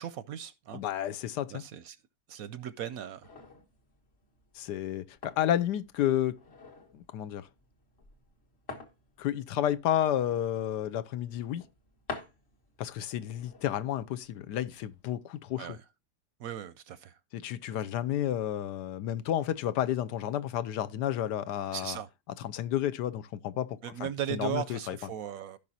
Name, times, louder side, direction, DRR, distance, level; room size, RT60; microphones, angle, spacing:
voice 1, 0.0-0.8 1.5-2.0 2.3-3.2 15.6-15.8 16.4-17.1 21.7-22.1 23.8-25.6, right 10 dB, 70° right, 0.9 m, -37 dB
voice 2, 0.7-1.6 4.5-6.4 6.9-7.5 9.2-11.6 12.8-15.8 17.3-22.0 22.4-25.0, left 11 dB, 80° left, 1.2 m, -31 dB
sound 1, 3.2-15.1, left 4 dB, 40° left, 1.6 m, -49 dB
15.5 x 5.4 x 2.7 m
omnidirectional pair, 1.8 m